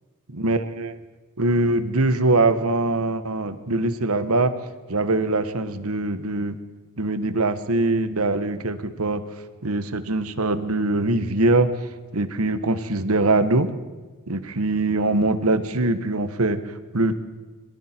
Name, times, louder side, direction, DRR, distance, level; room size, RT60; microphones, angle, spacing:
voice 1, 0.3-1.0 1.4-4.5 4.9-6.6 7.0-9.2 9.6-11.7 12.1-13.7 14.3-17.2, right 2 dB, 80° right, 11 dB, 1.4 m, -22 dB
27.5 x 22.0 x 4.5 m, 1.3 s
head